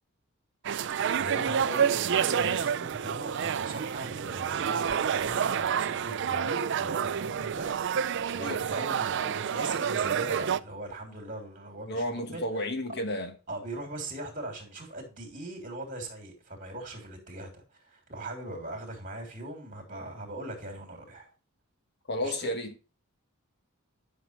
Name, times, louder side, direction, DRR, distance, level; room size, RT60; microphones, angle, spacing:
sound 1, 0.6-10.6, right 7 dB, 55° right, 0.4 m, -29 dB
voice 1, 0.9-12.4 12.9-13.0 13.5-21.3 22.2-22.5, right 1 dB, 35° right, 3.2 m, -40 dB
voice 2, 11.9-13.3 22.1-22.8, left 1 dB, 50° left, 1.3 m, -32 dB
11.0 x 6.3 x 3.2 m
head